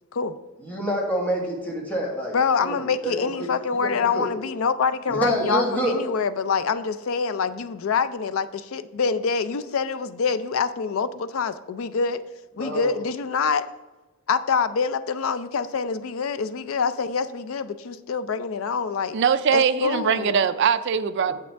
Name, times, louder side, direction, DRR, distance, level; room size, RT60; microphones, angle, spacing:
voice 1, 0.6-2.3 2.6-3.5 3.7-4.3 5.1-6.0 12.6-12.9, right 1 dB, 10° left, -3 dB, 1.7 m, -27 dB
voice 2, 2.3-12.2 12.6-13.7 14.3-19.2 19.5-20.4, left 5 dB, 75° left, 13 dB, 0.4 m, -25 dB
voice 3, 19.1-21.3, right 7 dB, 55° right, 12 dB, 0.4 m, -21 dB
8.7 x 7.2 x 3.4 m, 1.1 s
head